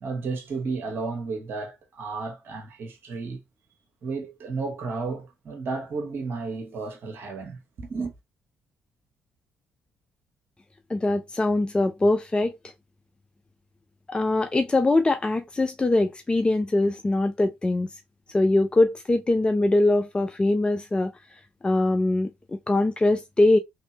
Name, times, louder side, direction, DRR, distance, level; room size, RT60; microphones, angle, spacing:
voice 1, 0.0-3.4 4.0-8.1, right 4 dB, 55° right, 1.1 m, -33 dB
voice 2, 10.9-12.6 14.1-17.9 18.3-21.1 21.6-23.6, left 2 dB, 20° left, 0.5 m, -22 dB
3.2 x 2.7 x 2.9 m
hypercardioid pair, 40°, 4 cm